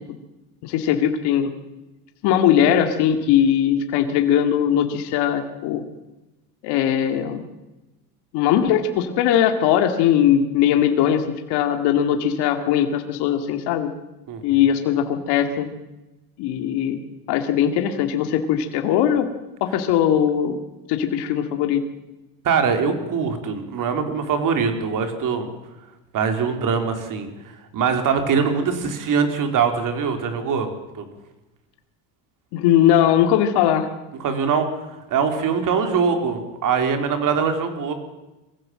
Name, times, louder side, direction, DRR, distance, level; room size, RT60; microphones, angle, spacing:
voice 1, 0.6-1.5 2.2-5.8 6.6-7.4 8.3-13.9 14.4-15.7 16.4-17.0 17.3-19.3 19.6-20.6 20.9-21.8 32.5-33.9, left 9 dB, 65° left, 6 dB, 2.2 m, -20 dB
voice 2, 14.3-14.6 22.4-25.5 26.1-27.3 27.7-30.7 30.9-31.1 34.2-34.7 35.1-37.9, right 6 dB, 45° right, 6 dB, 3.9 m, -22 dB
22.5 x 15.5 x 7.7 m, 1.0 s
supercardioid pair, 105°, 43 cm